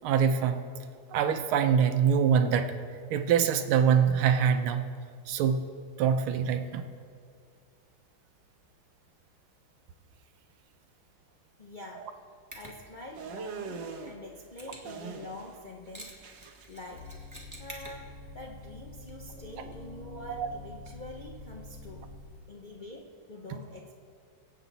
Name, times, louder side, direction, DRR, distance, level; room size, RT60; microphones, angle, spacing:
voice 1, 0.0-0.6 1.1-2.7 3.1-4.9 5.3-5.7 6.0-6.8 20.4-20.5, right 7 dB, 90° right, 8 dB, 1.7 m, -24 dB
voice 2, 11.6-12.1 12.5-16.2 16.7-17.1 17.6-22.1 22.5-23.9, left 1 dB, 75° left, -1 dB, 0.4 m, -45 dB
Mechanisms, 12.5-22.4, right 1 dB, 10° right, 1.4 m, -52 dB
sound 1, 13.2-14.1 14.9-15.6 15.9-16.7, right 5 dB, 65° right, 1.5 m, -41 dB
sound 2, 16.9-22.2, left 2 dB, 40° left, 2.5 m, -46 dB
23.0 x 8.0 x 4.1 m, 2.2 s
omnidirectional pair, 2.3 m